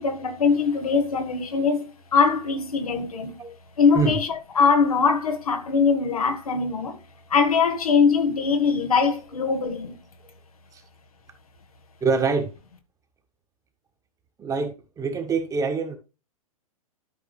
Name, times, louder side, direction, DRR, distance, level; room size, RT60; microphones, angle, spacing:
voice 1, 0.0-3.4 3.8-7.0 7.3-10.0, left 5 dB, 75° left, 1.6 m, -22 dB
voice 2, 12.0-12.5 14.4-16.0, right 5 dB, 20° right, 1.6 m, -25 dB
12.5 x 5.0 x 3.2 m
figure-of-eight pair, 105°, 19 cm